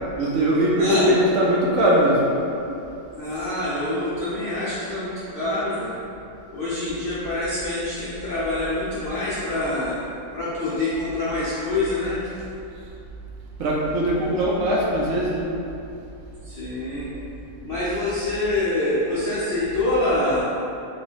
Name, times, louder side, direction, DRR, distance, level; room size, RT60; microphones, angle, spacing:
voice 1, 0.2-2.2 13.6-15.5, right 1 dB, 70° right, -4 dB, 0.9 m, -20 dB
voice 2, 0.8-1.2 3.1-5.9 6.5-10.0 10.3-12.2 16.4-17.1 17.6-20.4, left 2 dB, 75° left, -9 dB, 0.5 m, -25 dB
3.1 x 2.3 x 3.9 m, 2.7 s
omnidirectional pair, 1.7 m